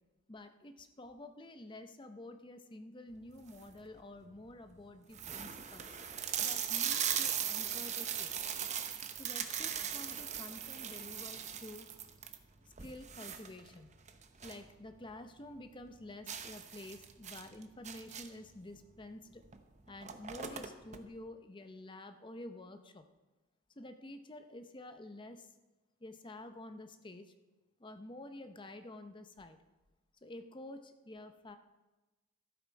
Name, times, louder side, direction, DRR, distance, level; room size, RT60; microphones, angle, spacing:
voice 1, 0.3-6.0 6.4-8.5 9.2-11.9 12.6-13.9 14.4-19.4 19.9-23.1 23.8-25.5 26.0-27.3 27.8-29.6 30.2-31.6, left 1 dB, 20° left, 8 dB, 0.7 m, -50 dB
sound 1, 3.3-3.8 4.4-4.5 4.7-4.8 5.1-14.7 15.0-15.1 15.5-15.6 16.3-18.5 19.4-19.6 19.8-21.0, right 8 dB, 35° right, 0.8 m, -39 dB
13.0 x 11.5 x 4.7 m, 1.1 s
head